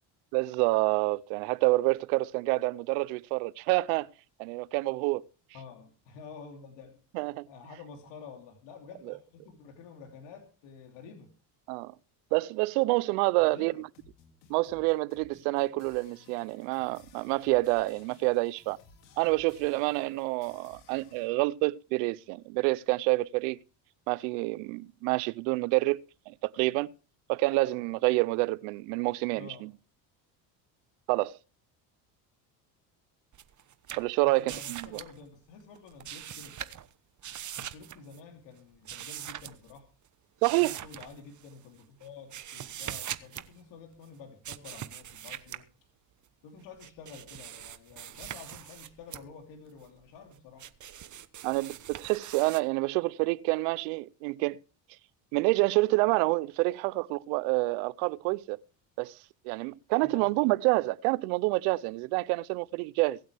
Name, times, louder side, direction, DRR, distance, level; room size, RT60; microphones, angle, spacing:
voice 1, 0.3-4.1 4.4-5.2 7.1-7.5 11.7-11.9 12.3-13.9 14.5-18.8 19.2-23.6 24.1-26.0 26.3-26.9 27.3-29.7 31.1-31.4 34.0-34.9 40.4-40.8 51.4-54.6 55.3-58.6 59.0-59.2 59.4-63.2, right 22 dB, 80° right, 0.7 m, -28 dB
voice 2, 5.5-7.0 7.4-11.3 13.4-13.8 29.3-29.7 34.2-36.7 37.6-39.9 40.5-45.7 46.4-50.6 60.0-60.3, left 5 dB, 70° left, 3.0 m, -49 dB
sound 1, 13.8-21.3, left 4 dB, 85° left, 2.7 m, -58 dB
sound 2, 33.3-35.2 35.8-36.9 37.2-38.2 38.8-39.8 40.4-41.5 42.0-43.5 44.4-45.6 46.6-49.2 49.8-52.6, right 10 dB, 40° right, 1.0 m, -42 dB
23.0 x 8.8 x 3.4 m
supercardioid pair, 80°, 45 cm